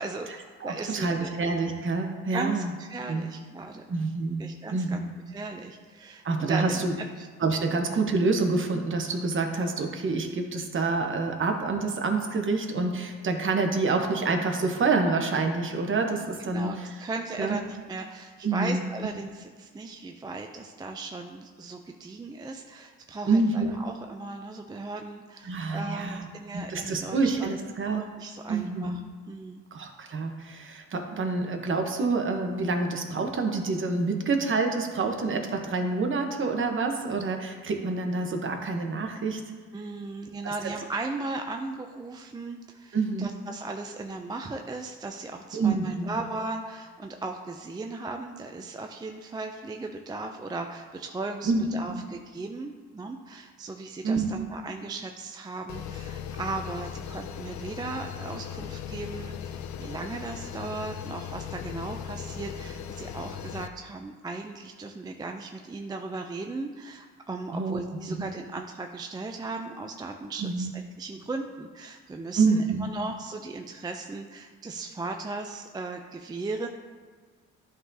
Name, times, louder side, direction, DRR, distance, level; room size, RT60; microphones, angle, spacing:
voice 1, 0.0-1.3 2.3-3.8 4.4-7.3 16.5-27.5 27.9-29.0 29.3-29.6 39.7-70.7 71.0-72.6 72.9-76.7, right 3 dB, 15° right, 4 dB, 0.3 m, -37 dB
voice 2, 0.6-2.7 3.1-3.3 3.9-5.1 6.2-6.9 7.4-16.9 17.4-17.6 18.4-18.8 23.3-23.7 25.4-26.3 26.5-28.0 28.5-29.0 29.7-39.4 40.4-40.5 42.9-43.3 45.5-46.2 51.4-52.0 54.0-54.3 67.5-67.8 68.1-68.2 70.4-70.7 72.4-72.9, right 3 dB, 40° right, 4 dB, 1.0 m, -27 dB
sound 1, 55.7-63.7, left 8 dB, 70° left, 0.5 m, -38 dB
11.0 x 3.8 x 2.7 m, 1.5 s
cardioid pair, 90°, 30 cm